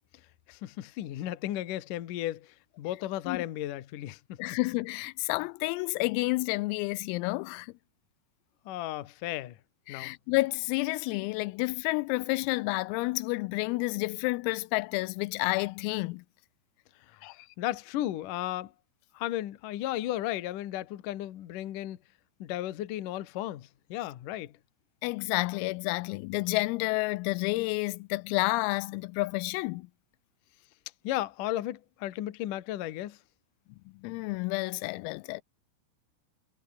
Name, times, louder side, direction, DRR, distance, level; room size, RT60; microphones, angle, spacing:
voice 1, 0.5-4.4 8.7-9.6 9.9-10.2 17.1-17.3 17.6-18.7 19.1-22.0 22.4-24.5 31.0-33.2, left 14 dB, 70° left, 2.0 m, -34 dB
voice 2, 4.4-7.7 9.9-16.2 17.2-17.4 25.0-29.9 34.0-35.4, left 23 dB, 85° left, 3.3 m, -30 dB
omnidirectional pair, 6.0 m